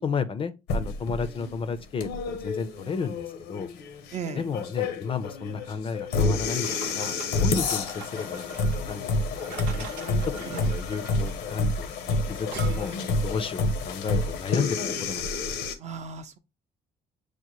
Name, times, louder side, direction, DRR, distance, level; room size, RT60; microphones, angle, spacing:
voice 1, 0.0-3.7 4.4-9.1 9.7-9.9 10.2-15.4, left 5 dB, 30° left, 0.4 m, -33 dB
sound 1, 0.7-15.7, left 3 dB, 80° left, 0.7 m, -29 dB
voice 2, 4.1-4.5 10.4-10.7 15.8-16.4, right 6 dB, 40° right, 0.6 m, -36 dB
sound 2, 6.6-13.1, right 6 dB, 80° right, 0.8 m, -43 dB
6.3 x 2.1 x 2.9 m
cardioid pair, 110°, 17 cm